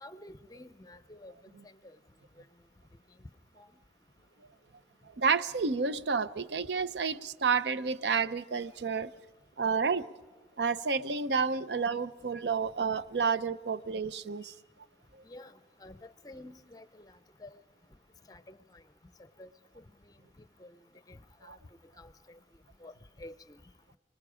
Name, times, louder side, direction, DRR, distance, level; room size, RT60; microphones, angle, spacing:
voice 1, 0.0-1.3 15.3-15.5 15.8-17.1 17.4-17.6 18.3-18.6 19.4-19.5 20.6-20.7 21.1-21.6 22.0-22.4 22.8-22.9 23.2-23.6, left 1 dB, 20° left, 12 dB, 0.6 m, -49 dB
voice 2, 5.2-9.1 9.6-10.1 10.6-14.5 21.4-21.6, right 5 dB, 80° right, 14 dB, 0.6 m, -30 dB
29.5 x 20.0 x 5.0 m, 1.2 s
head